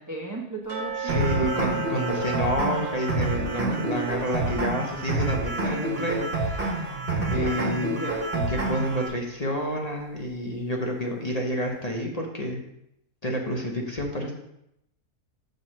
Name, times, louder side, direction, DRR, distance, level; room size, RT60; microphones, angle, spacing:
voice 1, 0.0-1.5 4.4-4.6 7.2-7.6 7.9-8.2, right 2 dB, 20° right, -1 dB, 0.6 m, -35 dB
sound 1, 0.7-7.5 7.8-7.9 8.4-8.5 9.1-9.2, right 6 dB, 75° right, 2.0 m, -37 dB
voice 2, 1.0-7.0 7.3-7.9 8.3-12.6 13.2-14.3, equal, 30° left, 0 dB, 1.0 m, -29 dB
sound 2, 1.1-9.1, right 2 dB, 35° right, 1.7 m, -28 dB
7.8 x 3.6 x 6.5 m, 0.81 s
omnidirectional pair, 1.7 m